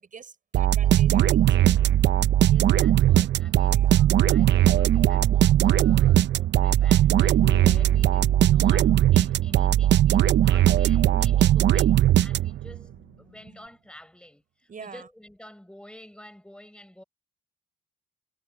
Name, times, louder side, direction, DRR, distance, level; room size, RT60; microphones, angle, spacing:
voice 1, 0.0-1.8 3.6-3.9 14.7-15.1, right 6 dB, 40° right, 6.9 m, -45 dB
sound 1, 0.5-12.8, right 12 dB, 65° right, 0.7 m, -19 dB
voice 2, 2.5-12.9 13.2-17.0, left 1 dB, 5° left, 7.2 m, -49 dB
Bass guitar, 7.4-13.7, left 11 dB, 70° left, 3.4 m, -47 dB
cardioid pair, 90°, 20 cm